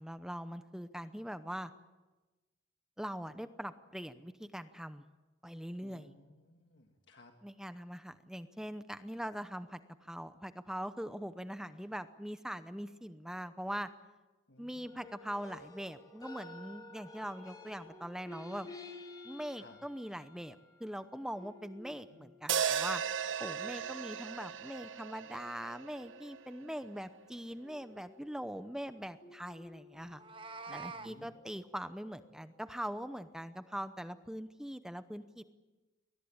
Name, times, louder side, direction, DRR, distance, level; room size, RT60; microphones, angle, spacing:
voice 1, 0.0-1.7 3.0-5.0 5.4-6.1 7.4-13.9 14.6-18.7 19.2-23.0 23.4-30.2 30.7-35.4, equal, 5° right, 11 dB, 0.7 m, -42 dB
voice 2, 5.8-7.3 14.5-15.0 19.6-19.8 22.1-22.3 30.7-31.3, left 2 dB, 65° left, 4 dB, 1.7 m, -59 dB
sound 1, 14.9-22.6 23.6-24.4 25.4-26.4 27.6-30.5 31.3-32.7 33.0-33.5, left 2 dB, 20° left, 4.7 m, -54 dB
sound 2, 22.5-26.8, right 8 dB, 85° right, 0.9 m, -36 dB
Meow, 30.0-31.1, right 4 dB, 25° right, 1.2 m, -45 dB
22.0 x 19.5 x 8.8 m, 1.2 s
head